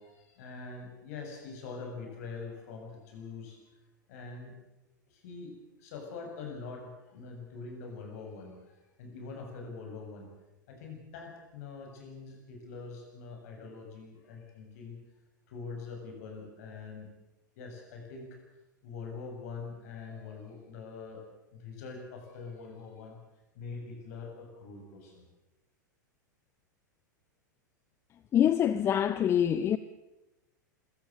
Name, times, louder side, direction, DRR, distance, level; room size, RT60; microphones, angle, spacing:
voice 1, 0.0-3.6 4.1-4.6 5.1-10.3 10.7-15.0 15.5-17.1 17.6-18.4 18.8-21.2 21.5-23.2 23.5-25.2, left 4 dB, 50° left, 7.6 m, -44 dB
voice 2, 28.3-29.8, left 9 dB, 25° left, 0.8 m, -25 dB
26.0 x 16.0 x 8.1 m
figure-of-eight pair, 90°, 10 cm